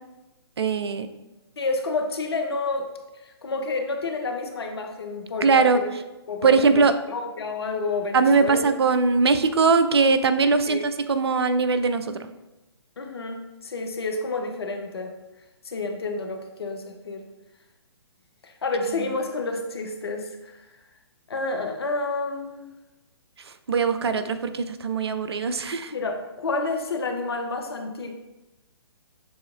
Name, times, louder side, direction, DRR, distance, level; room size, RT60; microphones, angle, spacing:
voice 1, 0.6-1.1 5.4-5.8 6.4-6.9 8.1-12.2 23.7-25.9, right 4 dB, 70° right, 10 dB, 0.4 m, -21 dB
voice 2, 1.6-2.9 3.2-5.9 6.3-8.6 10.7-10.9 13.0-15.1 15.6-17.3 18.4-20.6 21.3-22.7 25.9-28.1, left 3 dB, 65° left, 5 dB, 0.7 m, -29 dB
6.9 x 2.9 x 2.4 m, 1.0 s
figure-of-eight pair, 130°, 14 cm